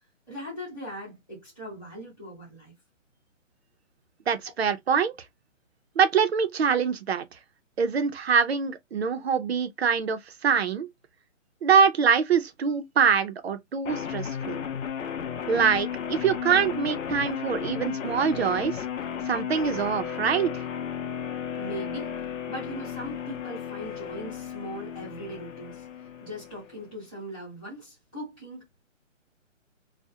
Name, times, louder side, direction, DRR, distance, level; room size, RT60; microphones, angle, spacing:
voice 1, 0.3-2.7 21.6-22.1 22.5-25.8 26.2-28.8, equal, 5° left, 0.8 m, -39 dB
voice 2, 4.3-5.1 6.0-7.2 7.8-10.9 11.6-14.6 15.5-18.8 19.3-20.6, right 6 dB, 55° right, 0.4 m, -24 dB
sound 1, 13.9-26.8, left 8 dB, 75° left, 0.7 m, -34 dB
2.4 x 2.0 x 2.6 m
hypercardioid pair, 175°, 38 cm